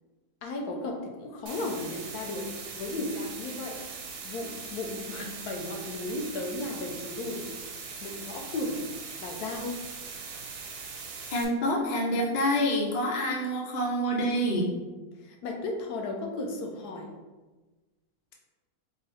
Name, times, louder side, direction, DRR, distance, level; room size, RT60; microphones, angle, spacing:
voice 1, 0.4-2.4 2.7-3.8 4.2-7.5 8.0-8.8 9.2-9.8 15.2-17.1, left 2 dB, 90° left, 2 dB, 1.2 m, -35 dB
sound 1, 1.5-11.5, right 5 dB, 85° right, 1.1 m, -41 dB
voice 2, 11.3-14.7, equal, 55° left, -1 dB, 0.4 m, -27 dB
3.7 x 2.0 x 4.1 m, 1.2 s
omnidirectional pair, 1.6 m